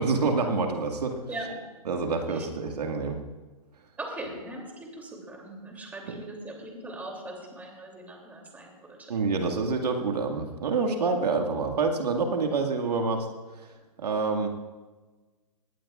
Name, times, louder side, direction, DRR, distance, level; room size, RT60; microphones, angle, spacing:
voice 1, 0.0-1.2 1.9-3.2 6.1-6.2 9.1-13.3 13.6-13.7 14.0-14.5, right 4 dB, 80° right, 3 dB, 2.0 m, -27 dB
voice 2, 1.3-1.6 4.0-9.0, right 1 dB, 10° right, 0 dB, 2.9 m, -40 dB
20.5 x 18.5 x 2.5 m, 1.3 s
hypercardioid pair, 140°, 20 cm